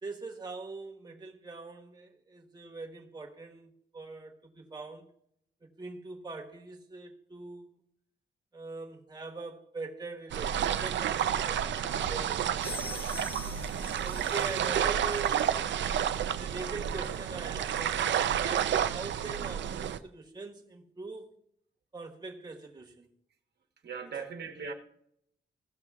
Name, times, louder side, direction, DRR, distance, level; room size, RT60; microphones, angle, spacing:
voice 1, 0.0-5.1 5.6-7.7 8.5-12.9 13.9-15.6 16.3-21.3 21.9-23.1 24.1-24.2, right 3 dB, 25° right, 1.4 m, -43 dB
sound 1, 10.3-20.0, right 9 dB, 90° right, 0.5 m, -30 dB
sound 2, 11.3-13.0, left 4 dB, 60° left, 1.2 m, -53 dB
sound 3, 12.6-15.6, left 4 dB, 30° left, 0.9 m, -44 dB
voice 2, 23.8-24.7, right 5 dB, 65° right, 1.2 m, -39 dB
16.5 x 6.6 x 3.6 m
wide cardioid pair, 130°, 18 cm